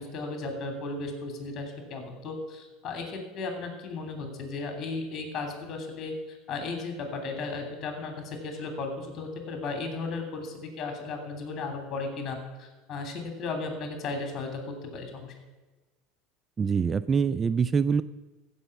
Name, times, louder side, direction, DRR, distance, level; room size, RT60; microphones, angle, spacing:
voice 1, 0.0-15.3, left 3 dB, 40° left, 4 dB, 3.0 m, -35 dB
voice 2, 16.6-18.0, right 6 dB, 30° right, 14 dB, 0.4 m, -24 dB
15.0 x 5.6 x 7.1 m, 1.2 s
hypercardioid pair, 80°, 0 cm